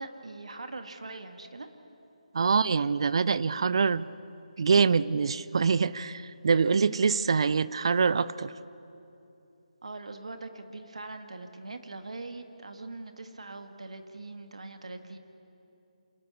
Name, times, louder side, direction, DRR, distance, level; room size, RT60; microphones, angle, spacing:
voice 1, 0.0-1.7 9.8-15.2, right 3 dB, 60° right, 6 dB, 1.8 m, -42 dB
voice 2, 2.3-4.1 4.6-8.5, right 5 dB, 45° right, 17 dB, 0.5 m, -25 dB
27.5 x 13.0 x 8.4 m, 2.8 s
figure-of-eight pair, 150°, 4 cm